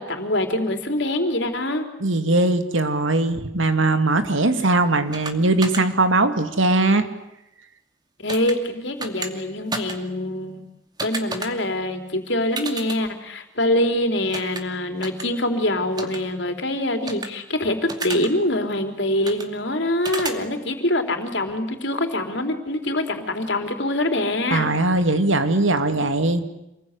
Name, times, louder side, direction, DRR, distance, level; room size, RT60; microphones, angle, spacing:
voice 1, 0.0-1.9 8.2-10.6 11.0-24.7, left 1 dB, 65° left, 6 dB, 3.8 m, -24 dB
voice 2, 2.0-7.0 24.5-26.4, right 2 dB, 80° right, 8 dB, 2.5 m, -20 dB
sound 1, 5.1-5.3 5.6-5.8 8.3-8.5 9.0-9.3 9.7-10.0 11.0-11.5 12.6-13.0 14.3-14.6 15.0-15.2 16.0-16.2 17.1-17.3 17.9-18.3 19.3-19.5 20.0-20.4, right 3 dB, 20° right, 2.5 m, -30 dB
28.0 x 21.5 x 9.9 m, 0.88 s
head